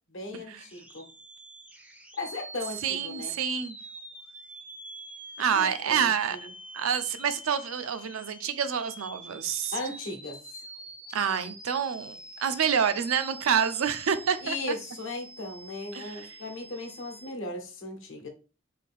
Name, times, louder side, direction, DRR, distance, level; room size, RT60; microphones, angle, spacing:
voice 1, 0.1-1.1 2.2-3.3 5.4-6.5 9.7-10.4 14.4-18.3, left 2 dB, 70° left, 1.0 m, -37 dB
sound 1, 0.6-17.3, right 2 dB, 5° right, 0.4 m, -46 dB
voice 2, 2.8-3.8 5.4-6.4 6.7-9.7 11.1-14.8 15.9-16.4, right 7 dB, 85° right, 0.4 m, -28 dB
3.9 x 2.6 x 3.4 m
head